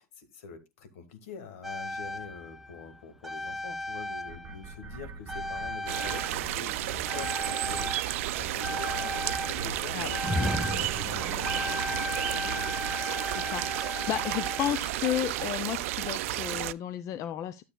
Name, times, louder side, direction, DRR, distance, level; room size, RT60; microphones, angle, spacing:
voice 1, 0.0-7.9 8.4-12.7, left 5 dB, 70° left, 1.6 m, -45 dB
sound 1, 1.6-4.9 5.3-15.4 16.3-16.4, left 1 dB, 5° right, 0.7 m, -36 dB
sound 2, 4.3-13.0, right 4 dB, 25° right, 1.8 m, -42 dB
sound 3, 5.9-16.7, right 16 dB, 65° right, 0.4 m, -32 dB
voice 2, 13.3-17.6, left 12 dB, 45° left, 0.6 m, -33 dB
12.0 x 7.5 x 2.2 m
hypercardioid pair, 80°, 8 cm